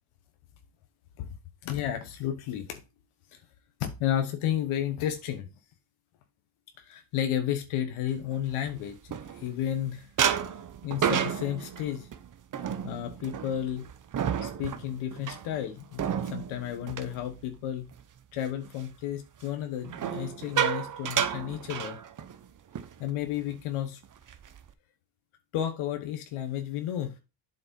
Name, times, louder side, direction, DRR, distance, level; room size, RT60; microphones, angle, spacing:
voice 1, 1.6-2.8 3.3-3.4 3.8-5.5 6.8-10.1 10.8-12.1 12.8-13.9 14.4-17.8 18.3-22.0 23.0-24.0 25.5-27.2, left 10 dB, 80° left, 1.3 m, -32 dB
sound 1, 8.3-9.7 10.2-18.0 18.4-18.7 19.8-22.4 22.7-22.9 23.3-23.5 24.0-24.7, right 8 dB, 40° right, 0.9 m, -32 dB
7.8 x 3.9 x 5.3 m
cardioid pair, 85°, 49 cm